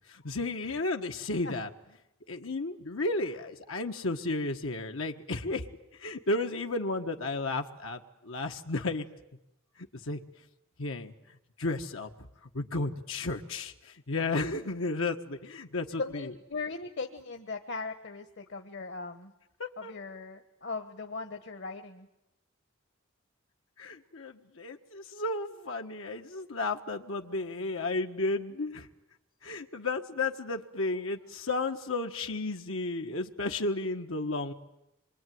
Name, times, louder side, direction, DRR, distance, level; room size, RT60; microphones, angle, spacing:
voice 1, 0.1-1.7 2.3-5.6 5.9-9.0 10.0-10.2 10.8-11.1 11.6-12.1 12.5-16.3 19.6-19.9 23.8-28.9 29.4-34.5, left 2 dB, 85° left, 4 dB, 1.5 m, -33 dB
voice 2, 3.2-3.5 6.6-6.7 15.9-19.3 19.8-22.1, left 4 dB, 60° left, 6 dB, 1.3 m, -39 dB
26.5 x 23.5 x 9.4 m, 0.91 s
head